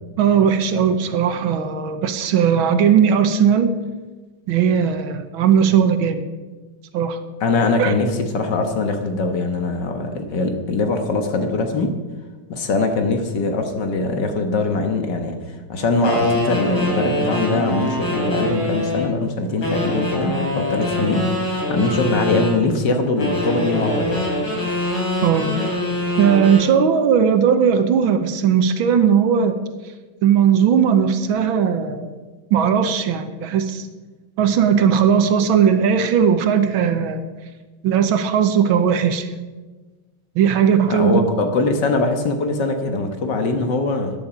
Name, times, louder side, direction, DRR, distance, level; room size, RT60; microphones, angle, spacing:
voice 1, 0.2-3.7 4.5-6.2 6.9-7.2 7.8-7.9 25.2-25.5 26.2-29.6 30.2-32.2 32.5-33.9 34.4-37.2 37.8-39.3 40.4-41.2, right 7 dB, 75° right, 9 dB, 1.7 m, -17 dB
voice 2, 7.4-11.9 12.5-24.2 40.9-44.1, left 3 dB, 60° left, 5 dB, 1.8 m, -22 dB
sound 1, 16.0-19.1 19.6-22.6 23.2-26.7, left 1 dB, 85° left, 4.5 m, -23 dB
14.5 x 10.5 x 5.1 m, 1.3 s
omnidirectional pair, 2.3 m